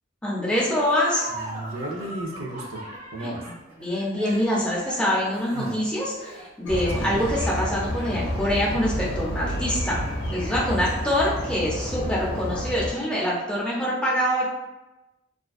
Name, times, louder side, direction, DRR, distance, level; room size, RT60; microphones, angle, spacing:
voice 1, 0.2-1.2 3.2-3.3 3.8-10.0 10.3-14.5, equal, 5° left, -6 dB, 0.5 m, -25 dB
Laughter, 0.7-9.0, right 1 dB, 40° right, 1.0 m, -40 dB
voice 2, 1.3-2.8 3.1-3.4 5.5-5.7 6.9-7.2, right 1 dB, 85° right, 0 dB, 0.5 m, -33 dB
sound 1, 6.7-12.9, equal, 60° left, 0.6 m, -29 dB
2.5 x 2.2 x 2.3 m, 1.0 s
head